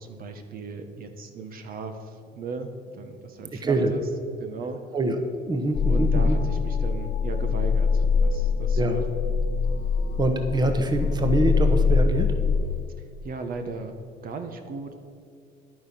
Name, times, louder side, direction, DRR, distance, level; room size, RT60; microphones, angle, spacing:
voice 1, 0.0-4.1 4.4-4.8 5.9-9.2 13.0-13.9 14.2-14.9, right 3 dB, 60° right, 6 dB, 1.3 m, -37 dB
voice 2, 5.4-6.4 8.8-9.0 10.2-12.3, right 2 dB, 25° right, 6 dB, 1.2 m, -24 dB
sound 1, 5.7-12.8, left 5 dB, 70° left, 1.4 m, -23 dB
11.5 x 9.4 x 6.0 m, 2.4 s
cardioid pair, 110°, 17 cm